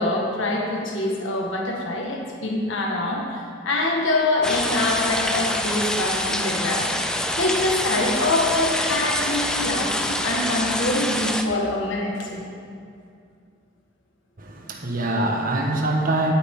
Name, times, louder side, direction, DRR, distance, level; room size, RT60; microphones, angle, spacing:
voice 1, 0.0-6.9 7.4-12.5, left 2 dB, 75° left, -1 dB, 1.7 m, -25 dB
sound 1, 4.4-11.4, left 1 dB, 5° left, 0.5 m, -26 dB
voice 2, 14.4-16.3, right 2 dB, 45° right, 1 dB, 1.4 m, -24 dB
17.5 x 8.7 x 3.8 m, 2.3 s
head